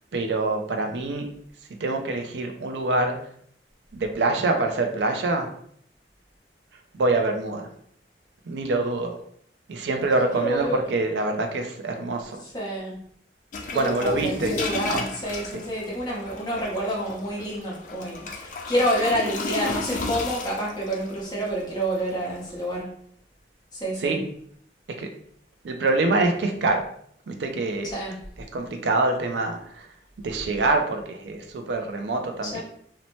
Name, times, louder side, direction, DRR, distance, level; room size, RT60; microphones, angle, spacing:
voice 1, 0.1-1.3 1.8-3.2 3.9-5.5 6.9-7.7 8.5-9.2 9.7-12.4 13.7-14.5 14.9-15.0 24.0-24.2 25.0-25.1 25.6-26.8 27.3-27.9 28.5-29.9 30.2-32.6, right 2 dB, 80° right, 4 dB, 0.4 m, -25 dB
voice 2, 10.3-10.8 12.4-13.0 13.7-22.9 23.7-24.2 27.8-28.2 32.4-32.6, equal, 25° left, -5 dB, 0.8 m, -28 dB
sound 1, 13.5-22.8, left 3 dB, 45° left, 0.4 m, -34 dB
2.7 x 2.1 x 2.9 m, 0.65 s
head